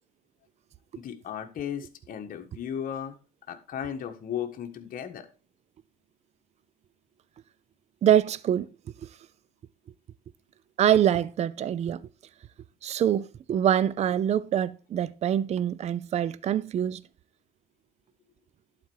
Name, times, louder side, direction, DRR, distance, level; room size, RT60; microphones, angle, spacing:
voice 1, 0.9-3.2 3.5-5.3, left 9 dB, 55° left, 1.4 m, -35 dB
voice 2, 8.0-8.7 10.8-12.0 12.8-17.0, right 10 dB, 40° right, 0.5 m, -24 dB
11.5 x 4.4 x 4.7 m
cardioid pair, 110°, 17 cm